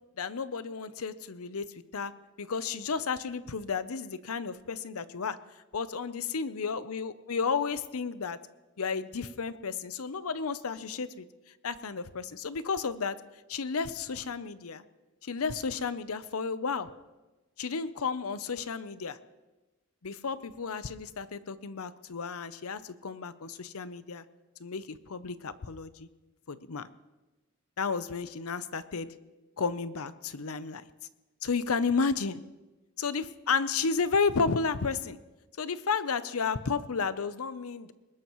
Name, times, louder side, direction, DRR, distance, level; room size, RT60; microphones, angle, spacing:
voice 1, 0.2-1.7 1.9-2.1 2.4-5.4 5.7-8.4 8.8-11.3 11.6-13.2 13.5-14.8 15.2-16.9 17.6-19.2 20.0-24.2 24.6-26.1 26.5-26.9 27.8-29.1 29.6-30.8 31.4-32.4 33.0-35.2 35.6-37.9, left 5 dB, 90° left, 14 dB, 0.7 m, -32 dB
22.0 x 20.0 x 3.1 m, 1.1 s
head